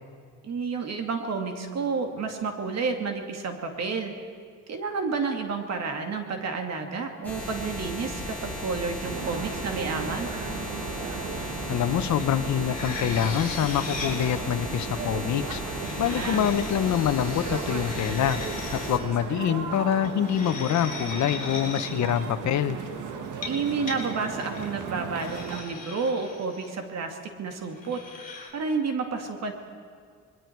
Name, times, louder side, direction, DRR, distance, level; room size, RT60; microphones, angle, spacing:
voice 1, 0.4-4.1 4.7-10.3 15.9-16.5 23.5-29.5, right 4 dB, 60° right, 4 dB, 2.5 m, -30 dB
sound 1, 7.2-19.0, left 1 dB, 5° left, 7.4 m, -36 dB
sound 2, 9.0-25.6, right 6 dB, 85° right, 1.8 m, -36 dB
voice 2, 11.7-15.6 16.0-18.4 18.7-22.8, left 10 dB, 65° left, 11 dB, 1.0 m, -25 dB
sound 3, 12.2-12.3 12.6-14.3 15.6-18.9 20.0-21.9 23.2-24.0 24.4-24.6 25.2-26.7 27.7-28.5, left 3 dB, 25° left, 5.4 m, -39 dB
26.0 x 21.5 x 4.7 m, 2.1 s
cardioid pair, 90°, 30 cm